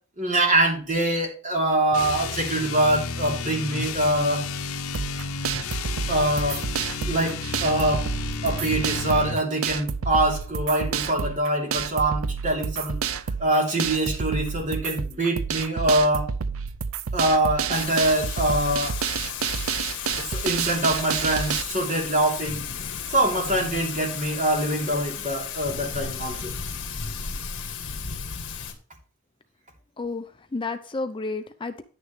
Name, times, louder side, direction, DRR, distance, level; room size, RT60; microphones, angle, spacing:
voice 1, 0.2-4.5 6.1-6.6 7.1-8.1 8.4-13.0 13.4-16.3 17.1-19.0 20.2-22.6 23.1-26.5, right 1 dB, 35° right, 1 dB, 3.2 m, -24 dB
sound 1, 1.9-9.5, left 4 dB, 75° left, 0.8 m, -32 dB
sound 2, 4.9-21.6, right 6 dB, 70° right, 0.5 m, -29 dB
Thunder / Rain, 17.7-28.7, left 7 dB, 60° left, 1.9 m, -34 dB
voice 2, 30.0-31.8, left 3 dB, 25° left, 8 dB, 0.6 m, -31 dB
10.0 x 9.6 x 3.2 m, 0.38 s
head